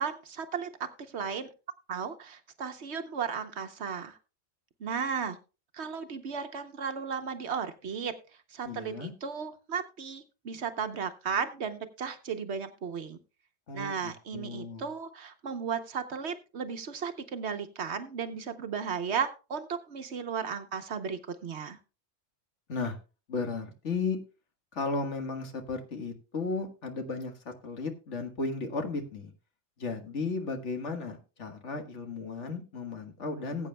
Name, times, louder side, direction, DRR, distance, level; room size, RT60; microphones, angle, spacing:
voice 1, 0.0-1.5 1.9-4.2 4.8-5.4 5.7-8.1 8.5-13.2 13.7-21.8, right 6 dB, 65° right, 8 dB, 1.1 m, -35 dB
voice 2, 8.7-9.1 13.7-14.9 22.7-23.0 23.3-24.2 24.7-29.3 29.8-33.7, left 4 dB, 65° left, 5 dB, 1.8 m, -35 dB
19.5 x 8.4 x 2.2 m, 0.31 s
omnidirectional pair, 1.3 m